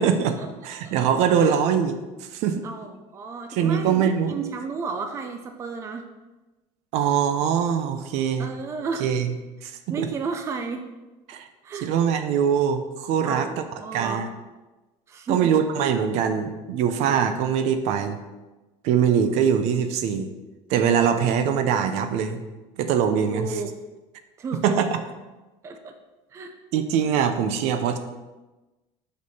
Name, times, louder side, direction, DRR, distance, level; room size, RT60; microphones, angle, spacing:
voice 1, 0.0-0.4 0.6-2.0 2.3-2.7 3.5-4.4 6.9-8.5 9.0-9.3 9.6-10.1 11.3-11.4 11.8-13.6 13.9-14.3 15.3-18.2 18.8-20.3 20.7-22.4 22.8-23.5 24.6-25.0 26.7-28.0, right 7 dB, 60° right, 9 dB, 0.7 m, -22 dB
voice 2, 2.6-6.1 8.4-9.1 9.9-10.8 11.6-11.9 13.2-14.3 15.1-15.5 23.3-23.7 24.4-24.9 25.6-25.9 26.3-26.5, right 4 dB, 20° right, 5 dB, 0.5 m, -33 dB
6.2 x 5.2 x 5.5 m, 1.1 s
cardioid pair, 165°, 13 cm